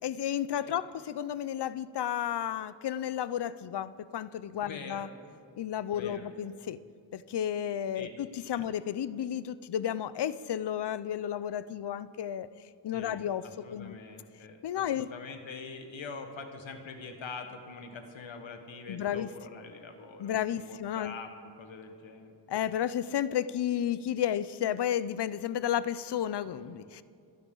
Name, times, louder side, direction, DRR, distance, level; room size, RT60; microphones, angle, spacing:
voice 1, 0.0-5.1 5.6-6.8 7.1-12.5 12.8-13.4 13.7-14.0 14.6-15.1 18.9-19.3 20.2-21.1 22.5-27.0, left 10 dB, 65° left, 16 dB, 0.5 m, -32 dB
voice 2, 4.6-5.1 5.9-6.3 7.9-8.1 8.5-8.7 12.9-21.3 21.6-22.3, left 4 dB, 85° left, 5 dB, 1.5 m, -44 dB
27.5 x 11.0 x 3.9 m, 2.4 s
wide cardioid pair, 160°, 45 cm